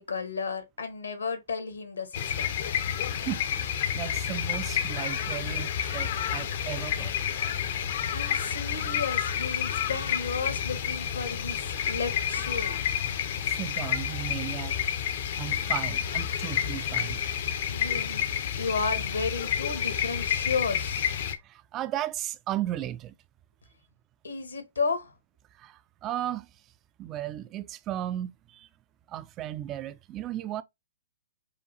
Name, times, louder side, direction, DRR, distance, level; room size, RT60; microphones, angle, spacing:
voice 1, 0.0-2.5 7.8-12.8 17.7-18.3 18.6-21.1 24.2-25.1, left 4 dB, 70° left, 1.0 m, -33 dB
sound 1, 2.1-21.3, left 9 dB, 50° left, 0.6 m, -30 dB
voice 2, 3.9-7.2 12.7-12.8 13.4-14.8 15.4-17.2 21.4-23.1 25.6-26.5 27.0-28.7 29.1-30.6, right 12 dB, 25° right, 0.3 m, -35 dB
4.9 x 2.3 x 2.7 m
figure-of-eight pair, 115°, 0 cm